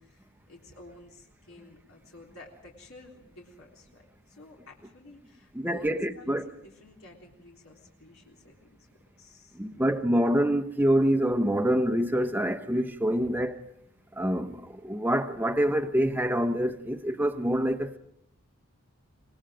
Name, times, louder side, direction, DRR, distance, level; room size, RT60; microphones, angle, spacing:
voice 1, 0.0-8.8 9.2-10.0, left 2 dB, 80° left, 3.7 m, -52 dB
voice 2, 5.5-6.5 9.5-13.6 14.1-18.0, equal, 10° right, 0.9 m, -26 dB
25.5 x 20.0 x 5.0 m
head